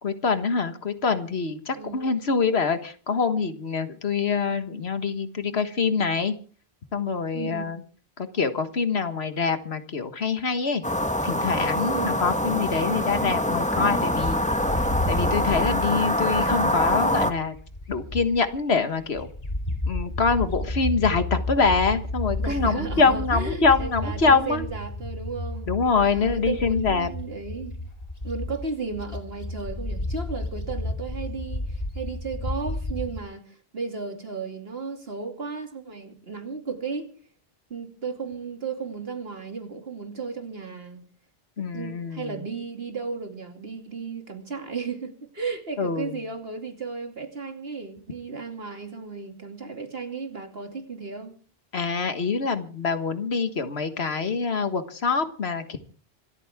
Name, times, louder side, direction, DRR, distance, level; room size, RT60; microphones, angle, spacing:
voice 1, 0.0-6.3 6.9-7.8 8.2-10.8 11.2-14.4 15.1-17.6 17.9-19.3 19.9-24.6 25.7-27.1 41.6-42.4 45.8-46.1 51.7-55.8, left 4 dB, 80° left, 1.7 m, -25 dB
voice 2, 1.8-2.1 7.3-7.7 11.9-12.2 22.4-25.7 26.1-27.8 28.2-37.1 37.7-41.0 41.6-51.3, right 4 dB, 70° right, 2.9 m, -34 dB
sound 1, 10.8-17.3, left 1 dB, 5° left, 1.3 m, -25 dB
Bird, 14.1-18.6 19.0-33.2, left 1 dB, 40° left, 2.6 m, -32 dB
26.0 x 13.5 x 3.6 m
omnidirectional pair, 1.0 m